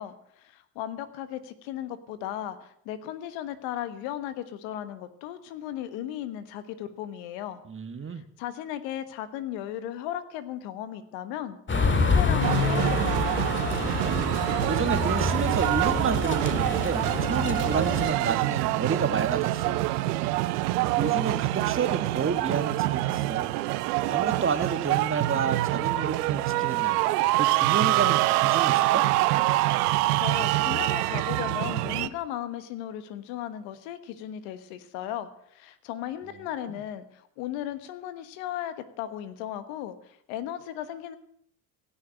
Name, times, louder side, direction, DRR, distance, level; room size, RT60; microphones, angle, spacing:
voice 1, 0.0-7.6 8.1-11.6 12.0-13.4 29.9-41.2, left 11 dB, 80° left, 12 dB, 1.4 m, -36 dB
voice 2, 7.7-8.2 13.8-14.3 14.7-19.8 20.9-23.5 24.1-27.0 27.4-29.1 36.6-36.8, right 6 dB, 25° right, 10 dB, 1.5 m, -30 dB
sound 1, 11.7-18.1, left 4 dB, 25° left, 1.9 m, -27 dB
sound 2, 12.4-32.1, right 17 dB, 90° right, 0.7 m, -25 dB
16.5 x 6.5 x 8.8 m, 0.70 s
supercardioid pair, 70°, 45 cm